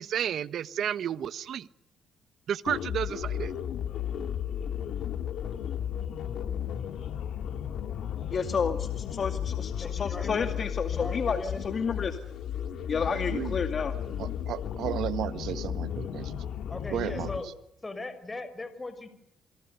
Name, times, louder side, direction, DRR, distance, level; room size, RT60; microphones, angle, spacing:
voice 1, 0.0-1.7 2.5-3.5, right 9 dB, 65° right, 1.0 m, -31 dB
sound 1, 2.7-17.4, left 9 dB, 75° left, 2.5 m, -34 dB
voice 2, 8.3-12.2 12.9-13.9, left 6 dB, 45° left, 2.3 m, -31 dB
voice 3, 9.8-10.5 10.9-11.6 16.7-17.5 17.8-19.1, left 2 dB, 20° left, 5.6 m, -38 dB
voice 4, 13.0-13.6 14.2-16.4 16.9-17.3, right 11 dB, 80° right, 1.7 m, -34 dB
28.5 x 24.5 x 6.8 m
cardioid pair, 90°, 0 cm